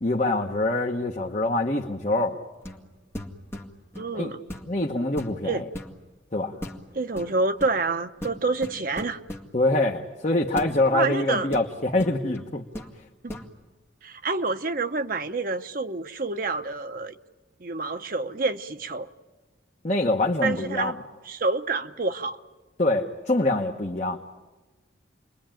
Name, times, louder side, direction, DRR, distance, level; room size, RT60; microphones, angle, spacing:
voice 1, 0.0-2.4 4.1-4.3 4.7-5.6 6.3-6.6 9.5-12.6 19.8-20.9 22.8-24.2, left 2 dB, 35° left, 1.1 m, -25 dB
sound 1, 2.6-2.9 3.1-4.1 4.5-4.8 5.1-5.9 6.6-6.8 7.2-7.8 8.2-9.5 10.6-10.7 11.5-12.5 12.7-12.9 13.3-13.5, left 1 dB, 15° left, 2.0 m, -38 dB
voice 2, 3.9-4.4 5.4-5.6 6.9-9.2 10.9-11.5 13.2-13.4 14.0-17.1 17.6-19.1 20.4-21.0 21.3-22.4, right 3 dB, 50° right, 0.8 m, -28 dB
29.0 x 22.0 x 9.1 m
head